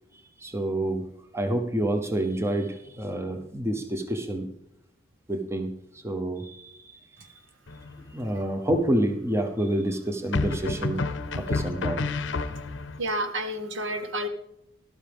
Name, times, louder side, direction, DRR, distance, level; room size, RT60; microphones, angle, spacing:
voice 1, 0.4-1.1 1.3-4.5 5.3-6.7 7.2-7.3 8.1-11.0 11.3-12.0, right 1 dB, 15° right, 6 dB, 0.8 m, -28 dB
sound 1, 7.7-8.2 10.3-13.0, left 3 dB, 70° left, 0.6 m, -30 dB
voice 2, 13.0-14.3, right 1 dB, 80° right, 8 dB, 1.2 m, -30 dB
12.5 x 12.0 x 3.5 m, 0.81 s
head